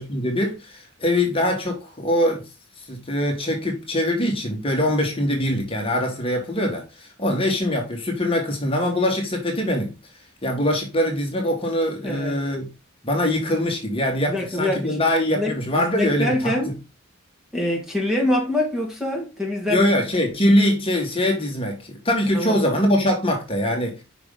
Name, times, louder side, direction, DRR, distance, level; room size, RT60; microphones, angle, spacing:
voice 1, 0.0-2.5 2.9-9.9 10.4-12.7 13.0-16.6 19.7-24.0, left 1 dB, 25° left, 1.7 m, -23 dB
voice 2, 12.0-12.4 14.3-15.1 15.3-16.7 17.5-19.9 22.3-22.6, left 1 dB, 5° right, 1.7 m, -25 dB
5.9 x 5.2 x 3.8 m
head